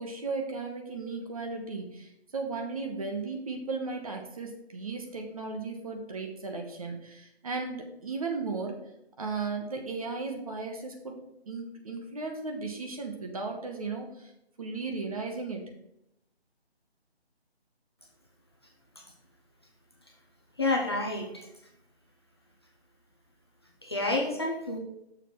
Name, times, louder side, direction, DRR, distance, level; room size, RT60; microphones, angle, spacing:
voice 1, 0.0-8.8 9.2-11.2 11.5-14.3 14.6-15.7, right 4 dB, 35° right, 3 dB, 1.0 m, -35 dB
voice 2, 20.6-21.5 23.8-24.8, left 2 dB, 25° left, -1 dB, 0.6 m, -29 dB
6.7 x 3.9 x 6.2 m, 0.81 s
figure-of-eight pair, 155°, 32 cm